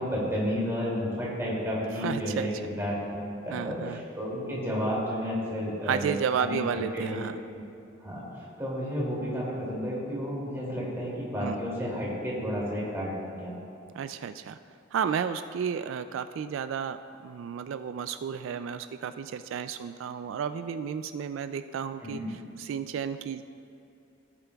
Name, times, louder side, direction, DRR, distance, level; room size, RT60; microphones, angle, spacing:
voice 1, 0.0-2.5 2.8-6.6 6.9-7.2 7.5-7.6 8.0-8.2 8.6-13.6 22.0-22.3, equal, 15° right, -6 dB, 2.5 m, -31 dB
voice 2, 2.0-2.5 3.5-4.0 5.8-7.4 11.4-11.6 13.9-14.6 14.9-17.0 17.2-23.4, right 7 dB, 85° right, 11 dB, 0.3 m, -32 dB
16.5 x 8.9 x 2.3 m, 2.8 s
head